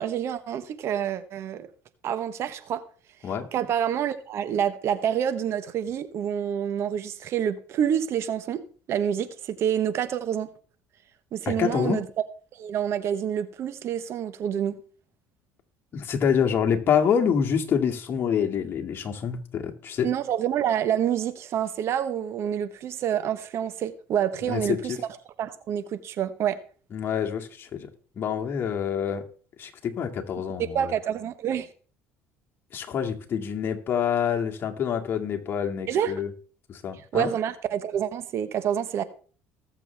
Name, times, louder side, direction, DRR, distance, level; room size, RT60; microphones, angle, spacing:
voice 1, 0.0-1.7 2.0-2.8 3.5-8.6 8.9-10.5 11.3-12.0 12.6-14.7 20.0-25.1 25.4-26.6 30.7-31.7 35.9-36.1 37.1-39.0, right 9 dB, 55° right, 1.1 m, -27 dB
voice 2, 11.5-12.0 15.9-20.1 24.4-25.0 26.9-27.9 28.2-29.2 29.6-30.9 32.7-36.3 36.7-37.3, left 7 dB, 45° left, 2.1 m, -26 dB
19.5 x 7.2 x 3.4 m
supercardioid pair, 90°, 5 cm